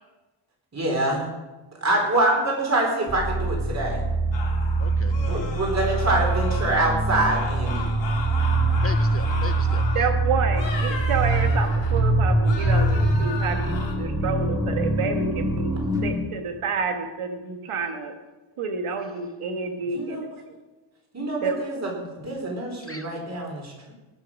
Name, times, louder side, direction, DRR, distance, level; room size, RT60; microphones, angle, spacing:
voice 1, 0.7-1.3 1.8-4.0 5.1-7.8 19.9-20.4 21.1-23.9, right 2 dB, 30° right, -1 dB, 3.9 m, -25 dB
sound 1, 3.1-16.1, right 2 dB, 5° right, 1.7 m, -23 dB
sound 2, 4.3-6.9 7.2-10.1 10.5-12.1 12.4-13.9, left 4 dB, 60° left, 2.5 m, -36 dB
voice 2, 4.8-5.1 8.6-10.0 22.8-23.1, left 4 dB, 30° left, 9 dB, 0.4 m, -39 dB
voice 3, 9.9-18.1 18.6-20.3 21.4-21.6, right 5 dB, 80° right, 5 dB, 1.5 m, -29 dB
18.5 x 6.6 x 6.1 m, 1.1 s
wide cardioid pair, 155°, 50 cm